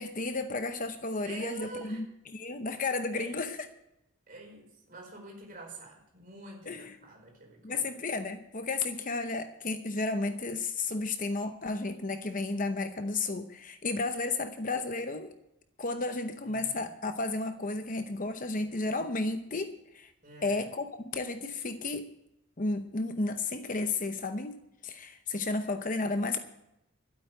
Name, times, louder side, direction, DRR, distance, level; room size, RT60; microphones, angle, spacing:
voice 1, 0.0-2.1 2.3-3.6 6.7-7.0 7.6-15.3 15.8-20.1 20.4-20.8 21.1-22.1 22.6-26.4, left 3 dB, 35° left, 8 dB, 0.8 m, -33 dB
voice 2, 1.2-2.0 3.1-3.5 4.3-7.8 16.4-16.9 20.2-20.6, right 2 dB, 40° right, 0 dB, 4.8 m, -46 dB
12.5 x 8.9 x 9.0 m, 0.83 s
head